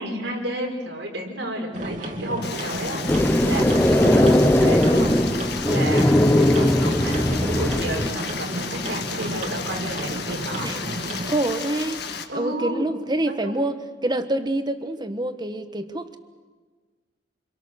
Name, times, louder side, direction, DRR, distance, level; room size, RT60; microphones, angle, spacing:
voice 1, 0.0-5.2 5.6-6.1 6.4-10.7 12.3-12.9 13.4-13.6, right 1 dB, 90° right, 0 dB, 5.5 m, -31 dB
sound 1, 1.7-11.4, right 1 dB, 45° right, 2.4 m, -32 dB
Stream, 2.4-12.2, left 6 dB, 65° left, 1.7 m, -34 dB
sound 2, 3.1-8.1, left 1 dB, 10° left, 0.9 m, -19 dB
voice 2, 11.2-12.0 12.3-16.2, right 1 dB, 25° right, 9 dB, 1.3 m, -26 dB
28.0 x 23.0 x 6.5 m, 1.4 s
head